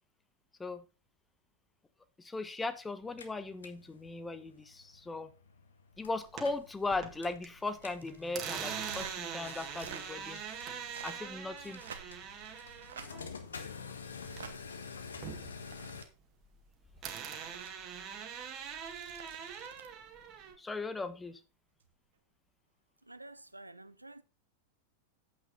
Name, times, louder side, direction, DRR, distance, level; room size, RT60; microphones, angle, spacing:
voice 1, 2.2-5.3 6.0-10.4 11.0-11.8 20.6-21.4, left 3 dB, 10° left, 1.0 m, -38 dB
sound 1, 3.0-16.0, left 5 dB, 70° left, 1.3 m, -50 dB
sound 2, 6.1-7.5 7.8-14.7 15.0-16.7 17.0-20.5, right 7 dB, 35° right, 1.9 m, -43 dB
sound 3, 7.5-8.3 8.8-9.2 9.6-10.0 10.8-11.3 11.7-12.3 12.8-13.1 14.2-14.5 15.3-16.1 17.0-17.7 18.7-19.9 21.8-22.0, right 7 dB, 65° right, 1.3 m, -50 dB
voice 2, 23.0-24.2, right 2 dB, 85° right, 0.6 m, -50 dB
8.9 x 8.3 x 4.0 m
figure-of-eight pair, 90°, 0 cm